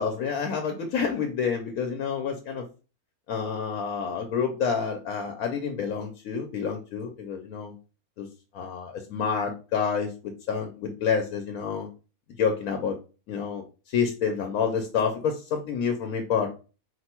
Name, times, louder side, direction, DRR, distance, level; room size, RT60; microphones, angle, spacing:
voice 1, 0.0-2.6 3.3-7.7 8.2-8.3 8.5-10.1 10.5-11.9 12.4-13.0 13.3-16.5, left 6 dB, 70° left, 4 dB, 1.1 m, -28 dB
4.5 x 2.2 x 4.3 m, 0.33 s
omnidirectional pair, 1.6 m